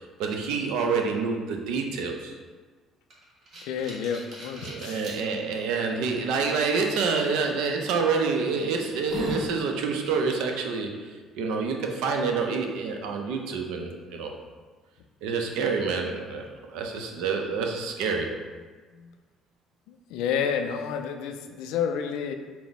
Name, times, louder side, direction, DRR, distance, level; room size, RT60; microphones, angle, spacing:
voice 1, 0.2-2.4 4.6-14.3 15.2-18.3, right 4 dB, 90° right, 3 dB, 0.5 m, -27 dB
sound 1, 3.1-5.2 5.8-5.9 7.6-7.8 8.4-8.5 8.8-9.5, equal, 55° right, 1.1 m, -37 dB
voice 2, 3.6-5.1 18.9-19.1 20.1-22.3, left 7 dB, 90° left, 5 dB, 0.3 m, -30 dB
4.4 x 2.0 x 4.0 m, 1.4 s
cardioid pair, 100°, 0 cm